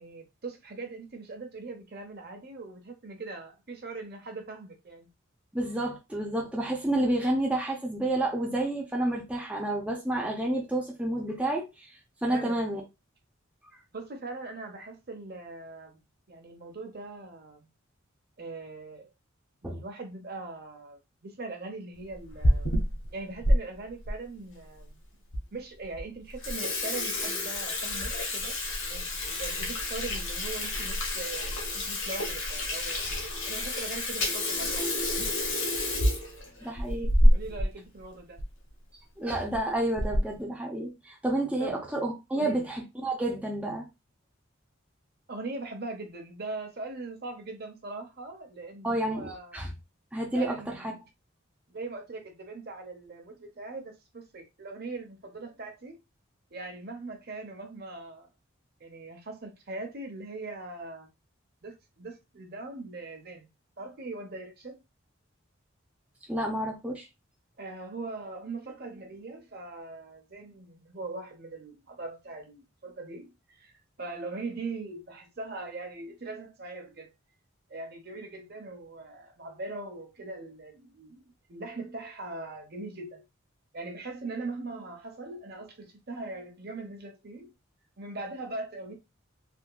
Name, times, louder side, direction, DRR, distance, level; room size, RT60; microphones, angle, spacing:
voice 1, 0.0-5.1 12.3-12.6 13.9-16.0 16.3-17.7 18.4-19.1 19.6-22.7 23.1-25.0 25.5-28.6 28.9-35.3 36.6-37.0 37.3-38.4 41.6-41.8 42.4-42.7 45.3-49.6 50.3-51.0 51.7-56.0 56.5-58.3 58.8-61.1 61.6-63.5 63.8-64.8 67.6-77.1 77.7-83.2 83.7-87.5 88.0-88.9, right 3 dB, 50° right, 0.8 m, -41 dB
voice 2, 5.5-11.9 12.2-12.8 19.6-19.8 36.6-37.3 39.2-43.9 48.8-49.7 50.1-50.9 66.3-67.1, right 1 dB, 5° right, 0.6 m, -30 dB
Water tap faucet / Sink (filling or washing), 22.1-23.6 24.1-24.2 24.9-25.0 25.3-25.4 25.8-26.0 26.3-37.7 38.0-38.1 38.4-38.5 39.3-39.6 40.0-40.4, left 1 dB, 70° left, 1.1 m, -28 dB
3.5 x 2.8 x 2.3 m
head